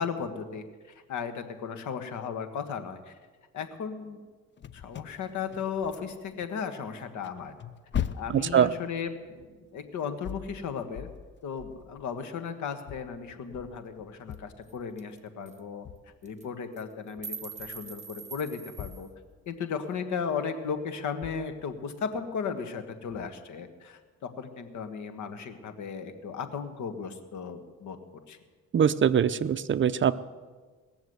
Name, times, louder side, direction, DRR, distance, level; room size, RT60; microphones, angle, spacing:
voice 1, 0.0-3.1 3.5-4.2 4.7-7.5 8.1-11.1 11.4-15.8 16.2-19.1 19.5-24.0 24.4-28.0 28.3-28.4, left 6 dB, 70° left, 8 dB, 1.5 m, -35 dB
sound 1, 4.6-6.5 6.8-12.3 12.8-15.1 15.8-16.2 17.2-18.0 18.3-19.8 20.6-20.7 21.2-21.7 23.1-23.3, left 9 dB, 40° left, 0.6 m, -41 dB
voice 2, 8.3-8.7 28.7-30.1, right 8 dB, 40° right, 14 dB, 0.5 m, -23 dB
sound 2, 14.3-14.4 14.7-14.8 15.0-15.2 15.5-15.6 16.2-16.5 16.8-19.1, right 6 dB, 25° right, 1.0 m, -42 dB
19.5 x 7.1 x 8.0 m, 1.4 s
cardioid pair, 90°, 30 cm